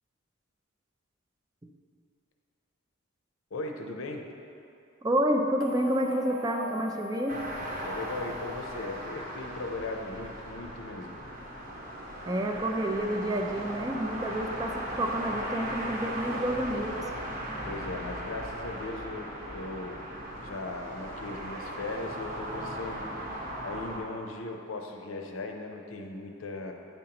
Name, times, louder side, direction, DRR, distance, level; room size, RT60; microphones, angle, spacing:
voice 1, 3.5-4.2 7.8-11.2 17.7-20.0 20.4-26.7, left 2 dB, 80° left, 3 dB, 0.6 m, -38 dB
voice 2, 5.0-7.4 12.3-17.1, right 1 dB, 20° right, 3 dB, 0.4 m, -29 dB
sound 1, 5.6-9.8, left 2 dB, 65° right, 0.6 m, -43 dB
sound 2, 7.3-24.0, right 1 dB, 40° right, 0.9 m, -38 dB
9.1 x 5.2 x 2.9 m, 2.7 s
head